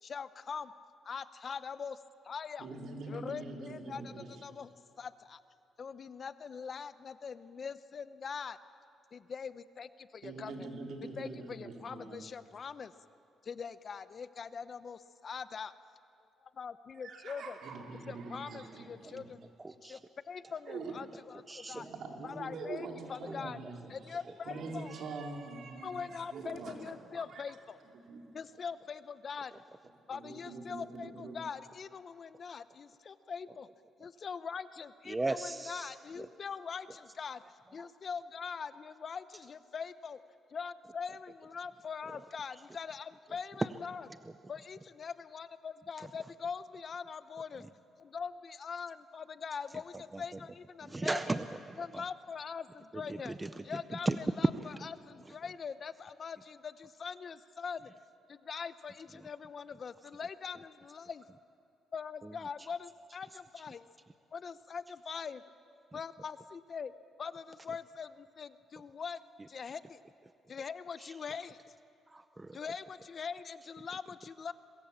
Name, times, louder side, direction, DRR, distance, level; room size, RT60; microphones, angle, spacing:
voice 1, 0.0-0.7 1.0-2.0 2.2-2.7 3.1-4.7 5.0-5.4 5.8-8.6 9.1-10.7 11.2-12.9 13.4-15.7 16.4-17.6 18.1-19.4 19.8-20.0 20.3-21.9 22.2-23.6 23.9-25.0 25.8-27.8 28.3-29.6 30.1-33.7 34.0-37.4 37.7-40.2 40.5-44.0 44.5-47.6 48.0-51.2 51.8-53.4 53.6-54.1 54.4-54.5 55.1-57.9 58.3-61.2 61.9-63.9 64.3-65.4 65.9-66.9 67.2-69.2 69.5-70.0 70.5-71.6 72.5-74.5, left 6 dB, 45° left, 13 dB, 0.8 m, -42 dB
voice 2, 2.6-4.6 10.2-12.2 17.0-19.3 20.7-20.9 21.7-27.4 28.1-28.4 30.1-31.4, right 3 dB, 65° right, 1 dB, 3.5 m, -44 dB
voice 3, 19.6-20.0 20.4-20.6 21.5-21.9 23.3-23.7 24.9-25.0 35.0-36.3 37.8-37.9 42.1-42.3 42.5-42.6 43.6-43.7 44.2-44.3 46.0-46.3 47.6-47.7 49.9-50.5 50.8-52.0 52.9-54.2 54.6-54.8 55.2-55.4 59.2-59.3 62.2-62.7 65.9-66.0 71.0-71.2 72.1-72.6, right 2 dB, 15° right, 10 dB, 0.6 m, -38 dB
23.5 x 21.5 x 7.3 m, 2.6 s
cardioid pair, 110°, 0 cm